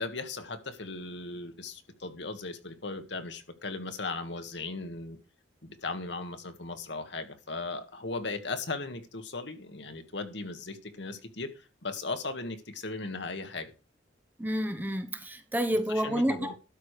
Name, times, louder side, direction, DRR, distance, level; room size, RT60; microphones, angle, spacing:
voice 1, 0.0-5.2 5.6-13.7 15.9-16.5, left 3 dB, 65° left, 1.6 m, -37 dB
voice 2, 14.4-16.6, equal, 10° right, 0.9 m, -29 dB
12.5 x 4.8 x 6.7 m
head